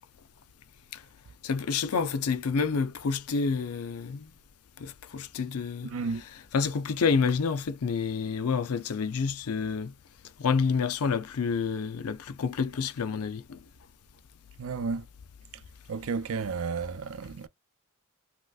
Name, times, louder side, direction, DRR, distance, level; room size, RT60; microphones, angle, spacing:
voice 1, 1.4-4.3 4.8-5.9 6.5-9.9 10.4-13.6, left 5 dB, 90° left, 0.5 m, -28 dB
voice 2, 5.8-6.2 14.6-15.0 15.9-17.5, right 5 dB, 70° right, 0.5 m, -32 dB
3.1 x 2.9 x 2.3 m
head